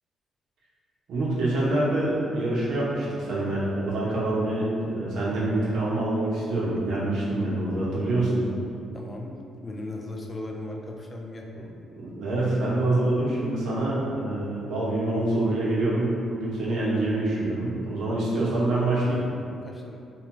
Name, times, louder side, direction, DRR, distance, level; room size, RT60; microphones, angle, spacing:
voice 1, 1.1-8.4 11.5-11.6 11.9-19.2, right 2 dB, 75° right, -7 dB, 0.7 m, -26 dB
voice 2, 8.9-11.5 19.6-20.0, left 2 dB, 25° left, 0 dB, 0.3 m, -37 dB
2.6 x 2.2 x 3.0 m, 2.5 s
cardioid pair, 90°, 0 cm